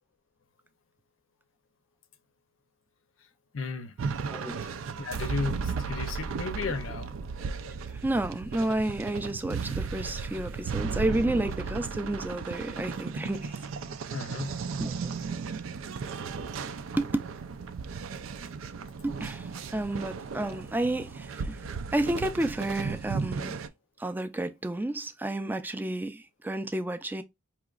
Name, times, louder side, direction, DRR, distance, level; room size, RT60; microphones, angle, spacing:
voice 1, 3.5-3.9 5.0-7.1 14.1-14.6, left 4 dB, 80° left, 0.6 m, -34 dB
sound 1, 4.0-23.7, right 5 dB, 90° right, 0.4 m, -35 dB
voice 2, 7.9-13.6 14.8-15.1 16.6-17.1 19.0-23.6 24.0-27.2, right 1 dB, 10° right, 0.3 m, -31 dB
5.0 x 2.9 x 2.4 m
head